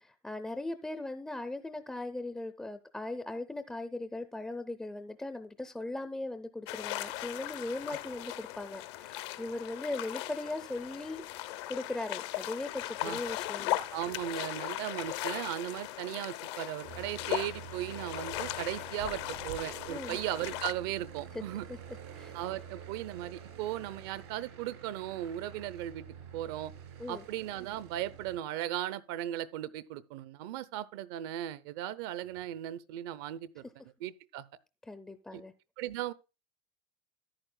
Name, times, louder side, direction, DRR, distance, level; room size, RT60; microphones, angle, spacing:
voice 1, 0.0-11.2 11.7-13.8 19.9-20.2 21.3-21.4 21.7-21.8 22.1-22.3 27.0-27.2 34.9-35.5, left 2 dB, 5° left, 0.4 m, -39 dB
sound 1, 6.7-20.7, left 15 dB, 75° left, 0.7 m, -38 dB
voice 2, 13.9-21.7 22.3-26.1 26.3-26.7 27.1-33.6 34.0-34.5 35.3-35.4 35.8-36.1, right 13 dB, 65° right, 0.6 m, -37 dB
Aircraft, 16.8-28.4, right 7 dB, 85° right, 4.7 m, -48 dB
14.0 x 10.5 x 2.2 m
cardioid pair, 165°, 14 cm